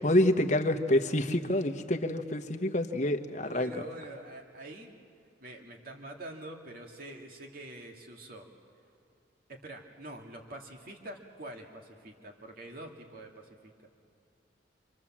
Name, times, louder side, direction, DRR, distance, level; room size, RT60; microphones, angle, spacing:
voice 1, 0.0-3.7, left 1 dB, 40° left, 6 dB, 1.2 m, -27 dB
voice 2, 3.4-4.9 5.4-8.5 9.5-13.7, right 1 dB, 50° right, 2 dB, 2.3 m, -45 dB
27.5 x 26.5 x 7.4 m, 2.6 s
head